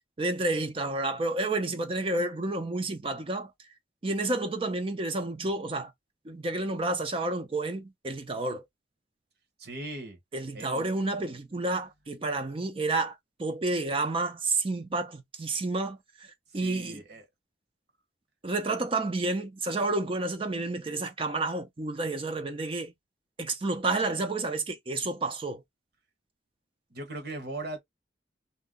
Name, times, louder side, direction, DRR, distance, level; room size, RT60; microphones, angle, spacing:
voice 1, 0.2-3.5 4.0-5.9 6.2-8.6 10.3-16.3 16.5-17.0 18.4-22.9 23.4-25.6, right 2 dB, 30° right, 0.5 m, -30 dB
voice 2, 9.6-10.2 10.5-11.3 16.6-17.2 26.9-27.8, right 2 dB, 60° right, 1.2 m, -39 dB
2.7 x 2.2 x 3.6 m
head